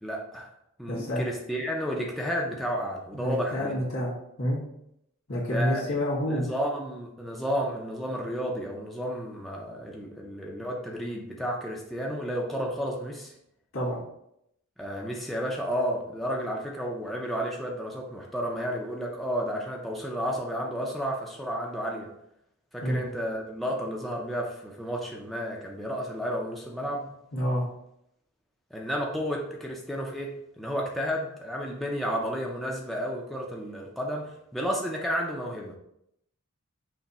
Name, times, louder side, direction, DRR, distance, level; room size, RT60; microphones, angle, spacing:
voice 1, 0.0-0.5 0.8-3.7 5.4-6.0 6.3-13.3 14.8-22.1 22.7-27.1 28.7-35.7, equal, ahead, -2 dB, 0.5 m, -32 dB
voice 2, 0.9-1.2 3.1-4.1 4.4-4.6 5.3-6.5 13.7-14.0 22.8-22.9 27.3-27.6, equal, 80° left, -4 dB, 1.8 m, -28 dB
5.8 x 2.1 x 4.2 m, 0.77 s
head